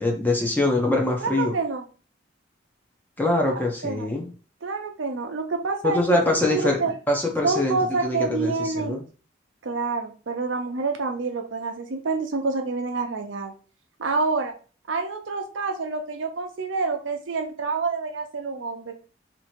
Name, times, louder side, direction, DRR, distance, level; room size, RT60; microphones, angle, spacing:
voice 1, 0.0-1.5 3.2-4.3 5.8-6.8 7.1-9.0, left 2 dB, 10° left, 0 dB, 0.8 m, -23 dB
voice 2, 1.2-1.8 3.8-4.1 4.6-6.9 7.4-9.0 9.6-13.5 14.0-14.5 14.9-18.9, right 4 dB, 85° right, 4 dB, 0.7 m, -27 dB
2.9 x 2.7 x 4.3 m, 0.38 s
head